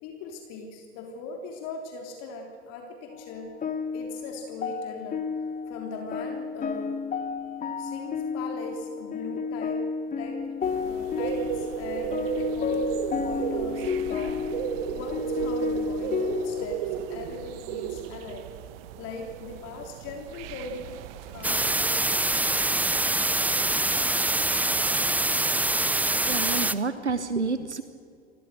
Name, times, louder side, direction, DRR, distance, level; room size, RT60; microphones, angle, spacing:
voice 1, 0.0-3.5 3.9-5.2 5.7-7.0 7.8-9.8 10.2-12.9 13.2-14.4 14.9-18.5 19.0-22.7, left 3 dB, 50° left, 2 dB, 3.5 m, -40 dB
sound 1, 3.1-16.7, left 5 dB, 25° left, 1.6 m, -31 dB
sound 2, 10.6-21.8, right 10 dB, 60° right, 1.5 m, -34 dB
sound 3, 21.4-26.7, right 2 dB, 5° right, 0.8 m, -24 dB
voice 2, 26.3-27.8, right 4 dB, 90° right, 11 dB, 1.1 m, -29 dB
28.0 x 23.5 x 6.7 m, 2.4 s
figure-of-eight pair, 75°, 33 cm